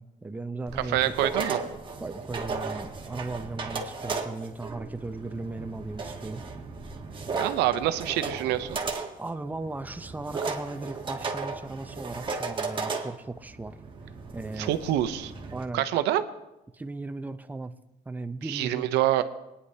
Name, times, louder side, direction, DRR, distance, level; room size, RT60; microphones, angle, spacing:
voice 1, 0.0-1.1 2.0-6.4 9.2-13.8 14.1-14.8 15.5-15.8 16.7-17.7 18.1-18.9, right 3 dB, 10° right, 9 dB, 0.6 m, -37 dB
sound 1, 0.7-15.6, right 4 dB, 30° right, 1.3 m, -35 dB
voice 2, 0.9-1.6 7.3-8.7 14.6-15.3 15.7-16.2 18.5-19.2, right 13 dB, 90° right, 11 dB, 0.7 m, -26 dB
22.0 x 9.7 x 2.8 m, 0.95 s
cardioid pair, 110°, 17 cm